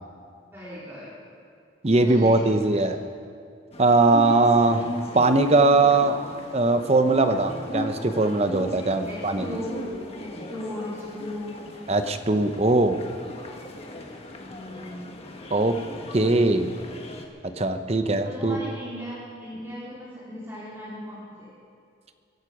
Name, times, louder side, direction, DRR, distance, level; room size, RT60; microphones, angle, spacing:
voice 1, 0.5-1.1 2.0-2.8 9.0-11.5 14.3-15.0 18.2-21.5, left 1 dB, 15° right, -10 dB, 3.3 m, -37 dB
voice 2, 1.8-3.0 3.8-4.8 5.1-6.2 6.5-9.5 11.9-13.0 15.5-15.7 16.1-16.7 17.6-18.6, right 2 dB, 35° right, 8 dB, 0.8 m, -20 dB
sound 1, 3.7-17.3, left 1 dB, 30° left, 1.4 m, -38 dB
23.0 x 12.0 x 5.0 m, 2.3 s
head